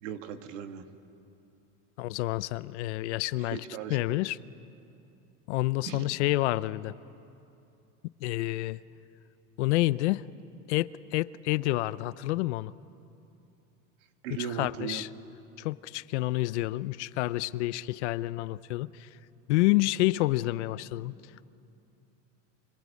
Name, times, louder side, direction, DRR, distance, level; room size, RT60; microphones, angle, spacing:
voice 1, 0.0-0.9 3.5-4.2 5.9-6.1 14.2-15.0, right 8 dB, 75° right, 8 dB, 1.9 m, -38 dB
voice 2, 2.0-3.6 3.9-4.4 5.5-6.9 8.2-8.8 9.6-10.2 10.7-12.7 14.3-15.1 15.6-19.1 19.5-21.1, left 18 dB, 65° left, 18 dB, 0.6 m, -28 dB
26.0 x 24.5 x 8.4 m, 2.7 s
supercardioid pair, 175°, 38 cm